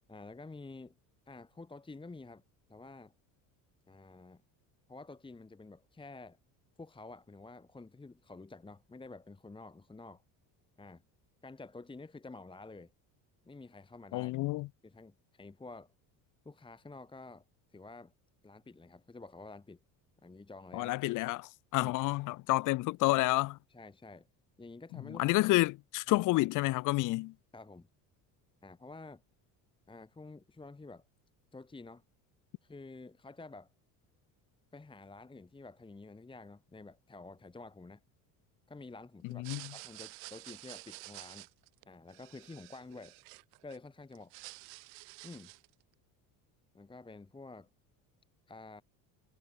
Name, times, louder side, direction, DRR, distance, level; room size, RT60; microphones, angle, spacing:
voice 1, 0.1-0.9 1.3-2.4 2.7-3.1 3.9-4.4 4.9-6.4 6.8-10.2 10.8-11.0 11.4-12.9 13.5-14.3 14.8-15.9 16.4-17.4 17.7-18.1 18.4-19.8 20.2-21.0 21.8-21.9 23.7-24.3 24.6-25.3 25.6-25.7 26.1-26.2 27.5-27.9 28.6-29.2 29.9-31.0 31.5-32.0 32.6-33.7 34.7-38.0 38.7-39.5 39.7-41.5 41.9-43.2 43.6-44.3 45.2-45.5 46.7-47.7 48.5-48.8, left 3 dB, 10° left, 1.3 m, -50 dB
voice 2, 14.1-14.7 20.7-23.6 25.1-27.3 39.2-39.7, left 20 dB, 50° left, 0.4 m, -30 dB
sound 1, 39.3-43.8 44.1-45.7, right 40 dB or more, 80° right, 0.9 m, -50 dB
supercardioid pair, 100°, 41 cm